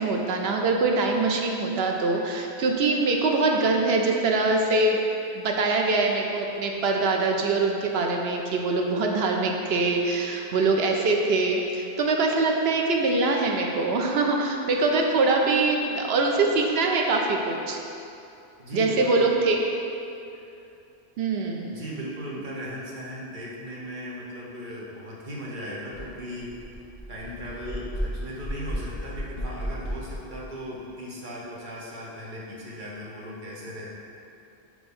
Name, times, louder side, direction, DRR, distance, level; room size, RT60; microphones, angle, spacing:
voice 1, 0.0-5.0 5.3-17.8 18.7-19.6 21.2-21.7, right 3 dB, 70° right, 1 dB, 0.9 m, -23 dB
voice 2, 18.6-19.3 21.6-26.7 27.1-34.0, equal, 50° right, -5 dB, 1.2 m, -37 dB
sound 1, 25.9-26.0 26.4-30.5, equal, 25° left, 1.4 m, -34 dB
6.3 x 3.0 x 5.3 m, 2.7 s
omnidirectional pair, 1.1 m